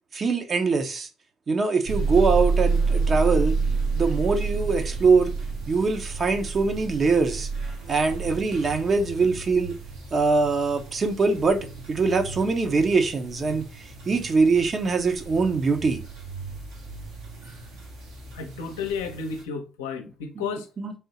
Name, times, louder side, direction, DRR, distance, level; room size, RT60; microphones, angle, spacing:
voice 1, 0.1-1.1 1.5-3.5 3.9-5.3 5.7-7.5 7.9-9.8 10.1-16.0 20.4-20.5 20.8-20.9, right 4 dB, 45° right, 0.8 m, -23 dB
sound 1, 1.9-19.4, right 4 dB, 75° right, 1.4 m, -30 dB
voice 2, 18.3-20.7, left 5 dB, 85° left, 0.6 m, -32 dB
3.5 x 2.7 x 4.1 m
hypercardioid pair, 50°, 0 cm